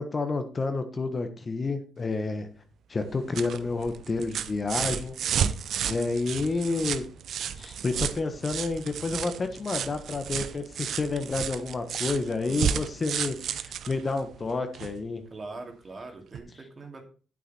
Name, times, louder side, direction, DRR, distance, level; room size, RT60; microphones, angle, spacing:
voice 1, 0.0-2.5 2.9-5.2 5.9-7.0 7.6-15.2, left 3 dB, 35° left, 8 dB, 1.3 m, -30 dB
sound 1, 3.0-15.0 16.3-16.4, right 8 dB, 65° right, 0.7 m, -32 dB
voice 2, 15.3-17.0, right 3 dB, 35° right, 3 dB, 2.7 m, -42 dB
9.2 x 8.0 x 4.3 m, 0.37 s
cardioid pair, 90°, 0 cm